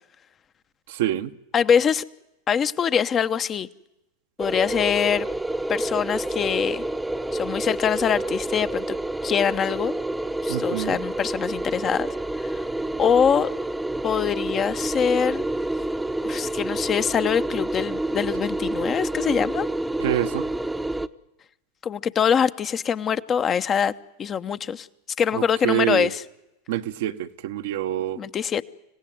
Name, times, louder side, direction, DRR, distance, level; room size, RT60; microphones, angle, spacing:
voice 1, 0.9-1.3 10.5-11.0 20.0-20.5 25.3-26.1 26.7-28.2, right 12 dB, 65° right, 1.1 m, -26 dB
voice 2, 1.5-2.0 2.5-3.7 4.4-5.3 5.7-6.8 7.3-8.9 9.2-9.9 10.4-12.1 12.4-12.6 13.0-13.5 14.0-15.4 16.2-19.7 21.8-23.9 24.2-24.9 25.2-26.2 28.2-28.6, left 7 dB, 30° left, 1.0 m, -23 dB
sound 1, 4.4-21.1, right 1 dB, 5° right, 0.9 m, -28 dB
26.0 x 17.0 x 9.4 m
hypercardioid pair, 85°, 0 cm